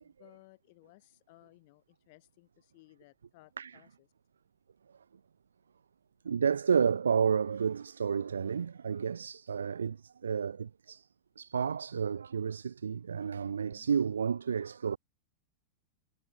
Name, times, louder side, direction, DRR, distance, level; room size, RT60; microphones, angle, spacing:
voice 1, 0.0-4.1 13.4-13.9, left 24 dB, 50° left, 2.1 m, -60 dB
voice 2, 6.3-10.0 10.2-11.0 11.4-15.0, right 6 dB, 70° right, 0.3 m, -31 dB
figure-of-eight pair, 90°, 0 cm